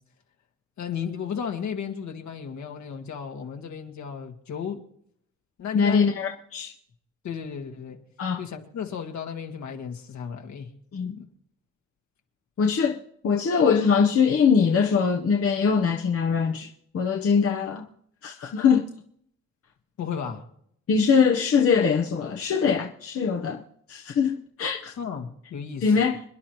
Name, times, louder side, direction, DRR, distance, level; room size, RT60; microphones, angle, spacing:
voice 1, 0.8-4.8 5.6-6.1 7.2-8.0 8.4-10.7 11.2-11.3 20.0-20.5 25.0-25.9, left 7 dB, 70° left, 2.0 m, -34 dB
voice 2, 5.7-6.7 8.2-8.4 10.9-11.2 12.6-13.0 13.2-16.7 16.9-17.8 18.2-18.9 20.9-23.6 23.9-24.9 25.8-26.2, left 6 dB, 50° left, 1.0 m, -22 dB
27.5 x 10.5 x 3.1 m
cardioid pair, 90°, 30 cm